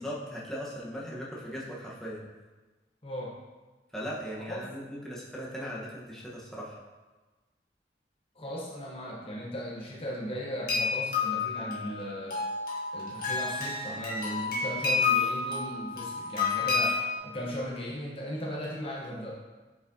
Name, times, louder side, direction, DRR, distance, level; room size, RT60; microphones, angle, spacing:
voice 1, 0.0-2.2 3.9-6.8, equal, ahead, -6 dB, 1.0 m, -38 dB
voice 2, 3.0-3.3 4.5-4.6 5.6-5.7 8.4-12.4 12.9-19.4, equal, 30° left, -3 dB, 0.8 m, -37 dB
sound 1, 10.7-17.2, left 4 dB, 55° left, 1.5 m, -30 dB
8.1 x 4.8 x 2.7 m, 1.2 s
head